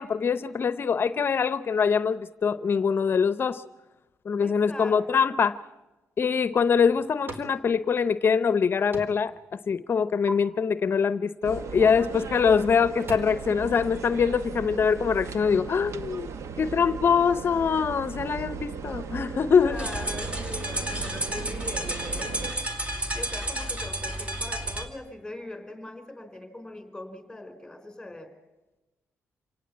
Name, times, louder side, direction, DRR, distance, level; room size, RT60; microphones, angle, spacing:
voice 1, 0.0-3.6 4.3-5.5 6.2-9.3 9.7-16.3 16.6-19.8, left 6 dB, 45° left, 14 dB, 0.7 m, -24 dB
voice 2, 4.4-5.3 11.9-12.0 19.5-22.7 23.1-28.3, left 1 dB, 5° left, 7 dB, 4.5 m, -41 dB
sound 1, 6.5-7.6 7.9-8.6 8.9-9.4 9.7-10.3 12.1-12.3 12.7-13.2, right 2 dB, 40° right, 4.1 m, -41 dB
sound 2, 11.4-22.5, right 5 dB, 65° right, 1.2 m, -37 dB
sound 3, 19.7-24.9, right 1 dB, 25° right, 2.6 m, -31 dB
27.0 x 18.0 x 8.5 m, 1.1 s
cardioid pair, 100°, 5 cm